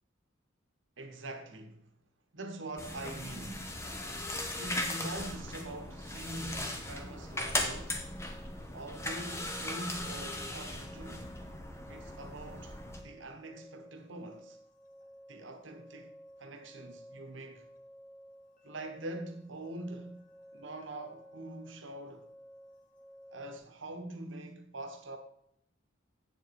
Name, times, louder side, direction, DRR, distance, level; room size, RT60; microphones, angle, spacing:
voice 1, 1.0-1.9 2.3-3.7 4.6-8.1 8.7-11.3 11.9-14.6 15.3-16.1 16.4-17.7 18.6-20.2 20.5-22.3 23.3-25.2, right 2 dB, 70° right, 1.2 m, -44 dB
sound 1, 2.8-13.0, left 1 dB, 15° left, 0.8 m, -38 dB
sound 2, 7.3-23.6, equal, 40° left, 1.0 m, -55 dB
8.0 x 7.1 x 4.2 m
head